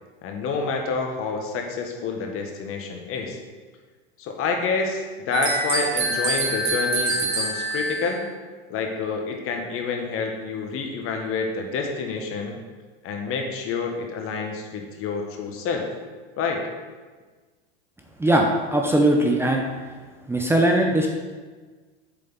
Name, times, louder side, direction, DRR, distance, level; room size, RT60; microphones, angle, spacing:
voice 1, 0.2-3.4 4.2-8.2 8.7-12.6 13.0-15.8 16.4-16.6, left 4 dB, 45° left, 2 dB, 1.6 m, -28 dB
sound 1, 5.3-8.2, right 2 dB, 85° right, 1.5 m, -25 dB
voice 2, 18.2-19.6 20.3-21.1, right 1 dB, 5° right, 1 dB, 0.9 m, -20 dB
8.3 x 6.9 x 4.0 m, 1.4 s
hypercardioid pair, 90°, 32 cm